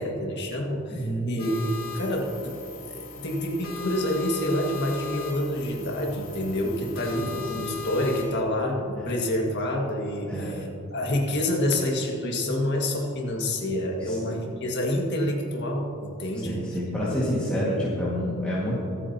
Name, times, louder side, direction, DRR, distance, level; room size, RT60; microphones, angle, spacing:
voice 1, 0.0-1.7 1.9-16.6, left 1 dB, 50° left, 0 dB, 1.9 m, -28 dB
voice 2, 0.9-1.4 7.2-7.7 9.0-9.1 10.2-10.7 14.0-14.4 16.4-18.8, equal, 5° left, -9 dB, 1.8 m, -29 dB
sound 1, 1.4-8.2, left 4 dB, 70° left, 2.7 m, -38 dB
24.5 x 8.6 x 2.9 m, 2.8 s
head